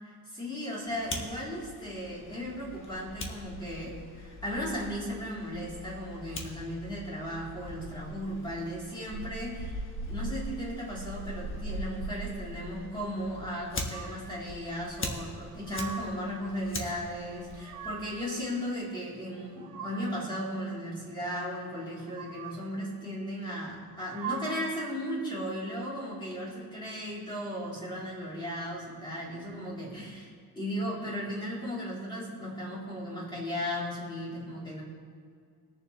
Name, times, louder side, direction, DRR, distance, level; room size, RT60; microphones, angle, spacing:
voice 1, 0.3-34.8, equal, 10° left, -6 dB, 3.3 m, -36 dB
Fire, 0.9-18.3, equal, 35° left, 1.3 m, -41 dB
sound 1, 13.9-14.5 15.3-16.3 17.3-18.3 19.2-20.4 21.9-22.8 23.9-24.9, right 6 dB, 70° right, 1.9 m, -42 dB
21.0 x 7.1 x 3.2 m, 2.2 s
cardioid pair, 155°, 37 cm